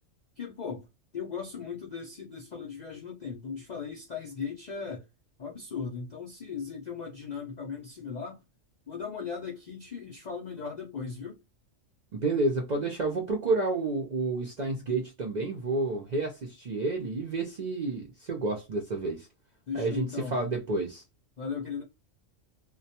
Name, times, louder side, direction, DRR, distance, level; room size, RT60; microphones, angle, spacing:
voice 1, 0.4-0.9 1.1-5.1 5.4-8.4 8.9-11.4 19.7-20.4 21.4-21.8, left 6 dB, 60° left, 0.4 m, -37 dB
voice 2, 12.1-19.3 19.7-21.0, right 3 dB, 55° right, 0.5 m, -30 dB
2.2 x 2.2 x 2.7 m
omnidirectional pair, 1.3 m